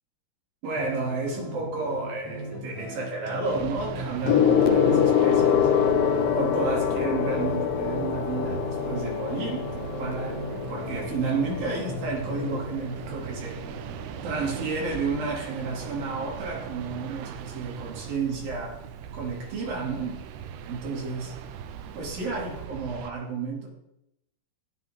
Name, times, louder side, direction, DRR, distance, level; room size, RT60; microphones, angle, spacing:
voice 1, 0.6-5.7 6.1-10.4 10.7-13.6 14.2-18.8 19.1-20.2 20.6-21.4 21.9-23.7, right 4 dB, 60° right, -2 dB, 4.5 m, -31 dB
sound 1, 0.7-12.6, equal, 30° right, 6.6 m, -38 dB
sound 2, 3.4-23.1, right 9 dB, 80° right, 2.8 m, -40 dB
Gong, 4.3-14.0 15.0-15.2, left 8 dB, 75° left, 2.3 m, -25 dB
17.5 x 12.0 x 3.7 m, 0.86 s
omnidirectional pair, 4.8 m